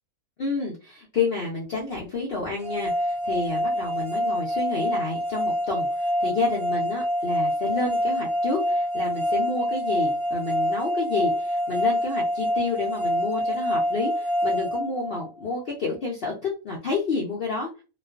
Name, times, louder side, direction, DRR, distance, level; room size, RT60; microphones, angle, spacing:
voice 1, 0.4-16.3 16.6-17.7, left 3 dB, 70° left, -2 dB, 0.5 m, -30 dB
sound 1, 2.6-15.6, equal, 50° right, 0.8 m, -26 dB
2.4 x 2.3 x 2.2 m, 0.32 s
omnidirectional pair, 1.6 m